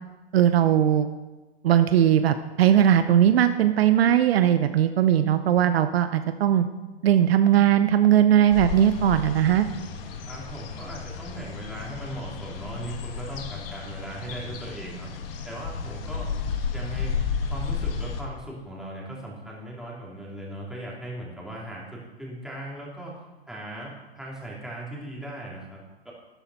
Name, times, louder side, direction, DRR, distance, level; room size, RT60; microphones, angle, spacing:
voice 1, 0.3-1.1 1.6-6.7 7.0-9.7, right 10 dB, 65° right, 10 dB, 0.8 m, -19 dB
sound 1, 8.5-18.2, left 6 dB, 60° left, 1.8 m, -32 dB
voice 2, 10.3-15.1 15.4-16.3 16.7-17.2 17.5-23.2 23.5-26.1, right 1 dB, ahead, -5 dB, 3.1 m, -38 dB
13.0 x 9.8 x 4.2 m, 1.1 s
hypercardioid pair, 125°, 32 cm